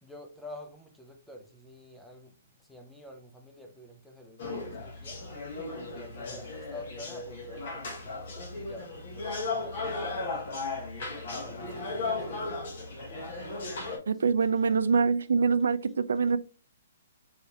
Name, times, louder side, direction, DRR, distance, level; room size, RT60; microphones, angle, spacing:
voice 1, 0.0-2.3 2.7-5.2 5.8-8.3 8.5-10.6 11.1-12.6, left 1 dB, ahead, 0.5 m, -48 dB
sound 1, 4.4-14.0, left 3 dB, 45° left, 1.2 m, -36 dB
voice 2, 14.1-16.4, right 5 dB, 85° right, 0.3 m, -24 dB
4.5 x 3.4 x 2.7 m
hypercardioid pair, 175°, 0 cm